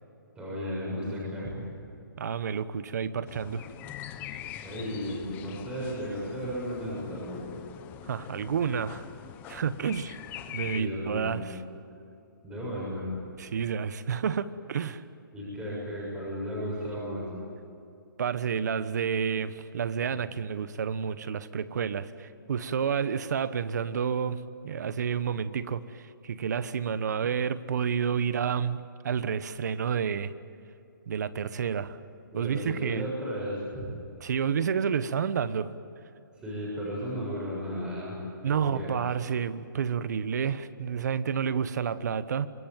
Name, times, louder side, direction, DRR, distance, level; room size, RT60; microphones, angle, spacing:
voice 1, 0.3-1.6 4.6-7.4 10.7-11.4 12.4-13.2 15.3-17.3 20.1-20.2 32.3-33.9 36.4-38.2 38.5-38.9, equal, 10° right, -5 dB, 7.1 m, -34 dB
voice 2, 2.2-3.7 8.1-9.1 9.5-10.2 10.5-11.6 13.4-15.0 18.2-30.3 31.1-32.0 32.3-33.1 34.2-35.7 38.4-42.5, right 7 dB, 55° right, 14 dB, 1.2 m, -30 dB
sound 1, 3.3-10.8, left 11 dB, 15° left, 1.0 m, -43 dB
26.0 x 22.0 x 9.3 m, 2.7 s
hypercardioid pair, 160°, 11 cm